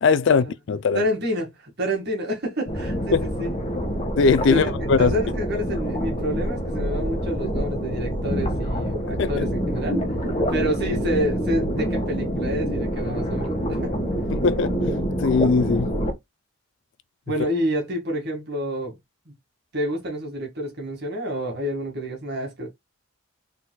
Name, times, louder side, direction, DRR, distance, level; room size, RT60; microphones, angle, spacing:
voice 1, 0.0-1.0 3.1-3.3 4.2-5.2 9.2-9.5 14.3-14.8 15.2-15.9, left 5 dB, 55° left, 0.4 m, -20 dB
voice 2, 0.9-3.5 4.4-4.7 5.0-10.0 10.5-14.0 17.3-19.0 19.3-19.4 19.7-22.7, equal, 50° right, 1.9 m, -28 dB
sound 1, 2.7-16.1, equal, 30° left, 1.5 m, -26 dB
4.2 x 4.0 x 2.2 m
head